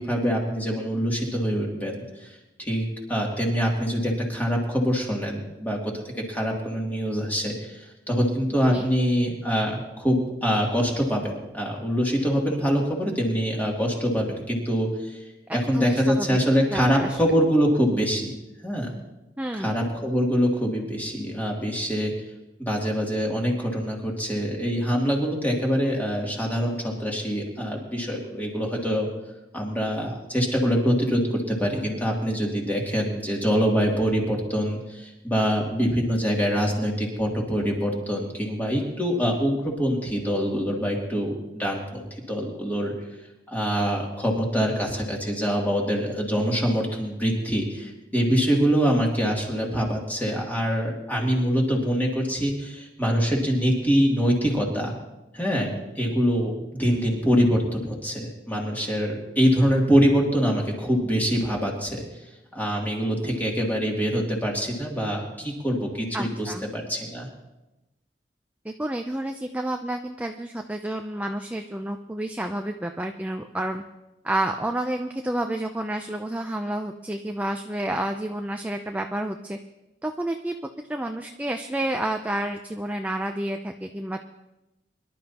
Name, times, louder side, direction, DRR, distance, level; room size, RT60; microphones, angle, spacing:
voice 1, 0.0-2.3 2.6-6.0 6.3-15.2 15.5-18.3 18.6-18.9 19.6-22.1 22.6-29.1 29.5-42.9 43.5-54.9 55.3-62.0 62.5-67.3, equal, 10° left, -2 dB, 2.7 m, -24 dB
voice 2, 15.5-16.4 16.7-17.2 19.4-19.7 66.1-66.6 68.6-73.8 74.2-79.6 80.0-80.5 80.9-84.2, right 1 dB, 10° right, 4 dB, 0.5 m, -30 dB
23.5 x 12.0 x 2.9 m, 0.97 s
head